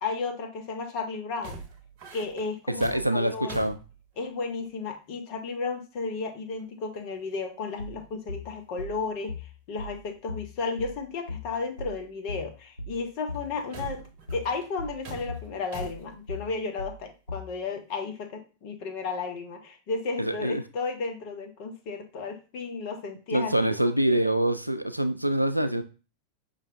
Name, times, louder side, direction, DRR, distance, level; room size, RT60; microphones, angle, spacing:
voice 1, 0.0-1.6 2.1-3.6 4.2-9.4 9.7-14.0 14.3-23.5 24.1-24.2, left 4 dB, 45° left, 5 dB, 0.9 m, -33 dB
sound 1, 1.3-4.7 6.6-6.7 6.9-7.4 7.7-8.0 8.5-8.6 8.9-9.1 10.2-10.3 11.7-11.8 13.3-16.2, right 3 dB, 45° right, 0.9 m, -44 dB
voice 2, 2.7-3.8 20.2-20.6 23.3-25.8, right 1 dB, 90° right, 10 dB, 0.3 m, -25 dB
sound 2, 7.8-17.6, left 2 dB, 85° left, 0.4 m, -39 dB
5.4 x 3.2 x 2.6 m, 0.33 s
figure-of-eight pair, 90°, 0 cm